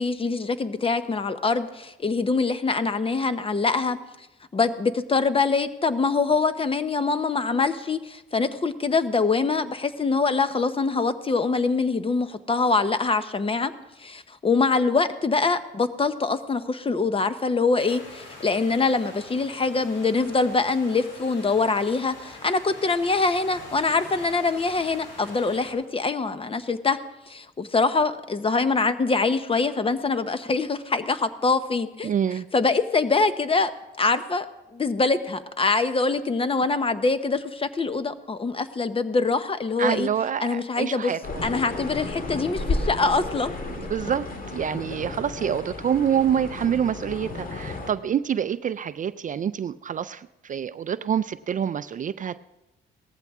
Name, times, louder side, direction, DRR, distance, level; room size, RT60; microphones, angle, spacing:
voice 1, 0.0-4.0 4.5-13.7 14.0-27.0 27.3-32.1 32.5-33.7 34.0-34.5 34.7-40.1 40.4-41.1 41.4-43.5, left 4 dB, 25° left, 12 dB, 0.9 m, -24 dB
sound 1, 17.8-25.7, left 2 dB, 90° left, 5.0 m, -44 dB
voice 2, 32.0-32.5 39.8-41.4 43.7-52.4, right 8 dB, 40° right, 14 dB, 0.4 m, -27 dB
sound 2, 41.2-47.9, left 2 dB, 45° left, 1.9 m, -33 dB
18.0 x 14.0 x 3.6 m, 0.96 s
cardioid pair, 90°, 20 cm